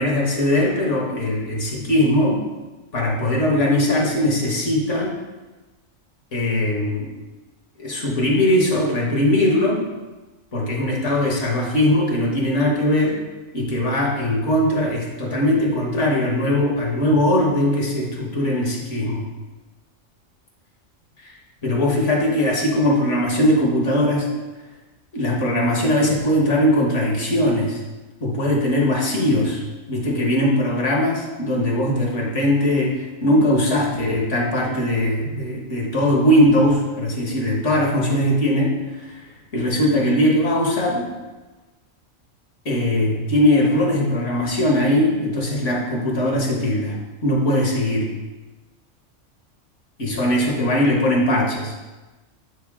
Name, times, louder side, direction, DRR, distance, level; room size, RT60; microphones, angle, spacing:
voice 1, 0.0-2.4 2.9-5.2 6.3-7.1 7.8-9.9 10.5-13.2 13.5-19.3 21.2-21.3 21.6-24.3 25.1-27.8 28.2-29.6 29.9-41.1 42.6-48.1 50.0-51.7, left 1 dB, 70° left, -2 dB, 1.6 m, -20 dB
7.6 x 4.3 x 3.6 m, 1.2 s
omnidirectional pair, 1.3 m